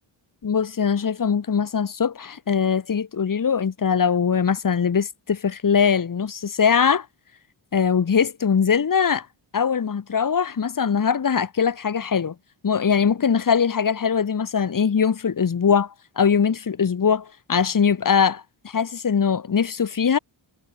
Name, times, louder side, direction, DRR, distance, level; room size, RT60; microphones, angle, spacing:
voice 1, 0.4-7.1 7.7-9.3 9.5-12.3 12.6-20.2, left 6 dB, 40° left, 2.1 m, -21 dB
wide cardioid pair, 175°, 49 cm